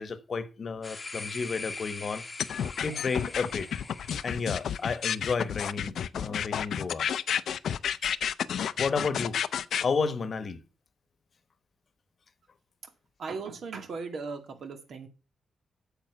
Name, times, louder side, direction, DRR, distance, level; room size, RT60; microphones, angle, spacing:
voice 1, 0.0-2.2 2.8-3.7 4.2-7.1 8.8-9.4 9.8-10.6, left 5 dB, 45° left, 1.2 m, -31 dB
sound 1, 0.8-5.2, left 3 dB, 20° left, 1.1 m, -42 dB
sound 2, 2.4-9.8, left 8 dB, 70° left, 0.6 m, -30 dB
voice 2, 13.2-15.1, right 4 dB, 60° right, 2.2 m, -37 dB
9.0 x 7.5 x 5.9 m
cardioid pair, 130°, 0 cm